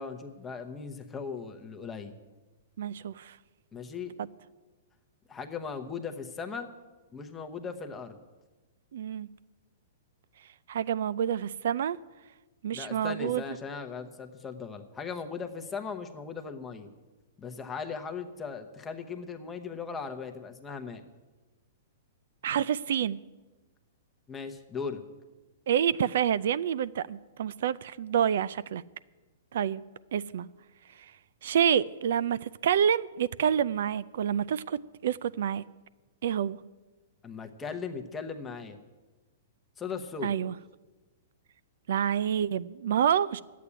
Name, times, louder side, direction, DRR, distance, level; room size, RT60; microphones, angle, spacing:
voice 1, 0.0-2.1 3.7-4.1 5.3-6.7 7.1-8.2 12.7-16.9 17.4-21.0 24.3-25.0 37.2-38.8 39.8-40.3, left 5 dB, 10° left, 0.9 m, -38 dB
voice 2, 2.8-3.4 8.9-9.3 10.7-12.0 12.6-13.4 22.4-23.2 25.7-28.8 29.5-29.8 30.1-30.5 31.4-35.6 36.2-36.6 40.2-40.5 41.9-43.4, right 9 dB, 65° right, 0.3 m, -28 dB
11.0 x 8.4 x 9.9 m
hypercardioid pair, 165°, 0 cm